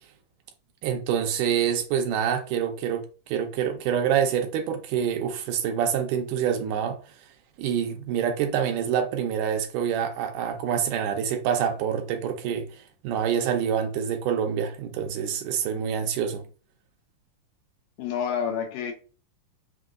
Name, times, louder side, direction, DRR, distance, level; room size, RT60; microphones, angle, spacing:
voice 1, 0.8-7.0 7.6-12.7 13.0-16.4, right 8 dB, 80° right, 2.1 m, -26 dB
voice 2, 18.0-18.9, left 7 dB, 75° left, 2.4 m, -28 dB
6.0 x 2.7 x 2.4 m
omnidirectional pair, 3.9 m